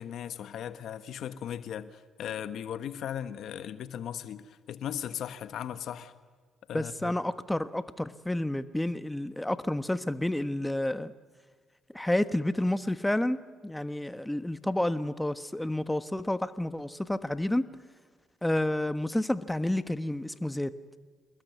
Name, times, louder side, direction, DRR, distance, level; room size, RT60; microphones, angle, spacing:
voice 1, 0.0-6.1 6.7-7.1, left 9 dB, 70° left, 11 dB, 1.3 m, -37 dB
voice 2, 6.7-11.1 11.9-17.6 18.4-20.7, left 1 dB, 10° left, 11 dB, 1.3 m, -30 dB
27.0 x 21.0 x 9.4 m, 1.5 s
supercardioid pair, 60°, 0 cm